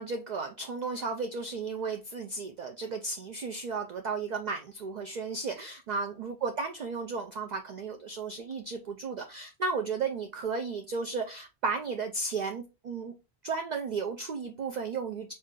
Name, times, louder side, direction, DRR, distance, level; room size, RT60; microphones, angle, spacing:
voice 1, 0.0-13.1 13.4-15.3, right 4 dB, 55° right, 5 dB, 0.5 m, -34 dB
4.0 x 2.5 x 3.6 m, 0.27 s
omnidirectional pair, 1.1 m